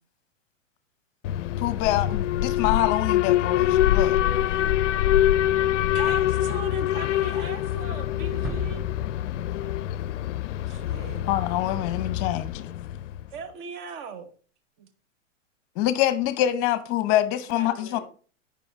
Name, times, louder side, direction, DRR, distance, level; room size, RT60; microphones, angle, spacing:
Alarm, 1.2-13.3, left 12 dB, 70° left, 0.5 m, -25 dB
voice 1, 1.6-4.2 11.3-12.7 15.8-18.0, left 13 dB, 35° left, 0.8 m, -25 dB
voice 2, 4.2-6.8 9.4-9.8 17.4-18.0, equal, 70° right, 4.1 m, -46 dB
voice 3, 5.9-8.9 10.7-11.3 13.3-14.3 14.8-14.9, right 5 dB, 35° right, 1.2 m, -39 dB
sound 1, 8.4-11.3, left 2 dB, ahead, 0.6 m, -38 dB
9.0 x 5.3 x 4.4 m
hypercardioid pair, 120°, 38 cm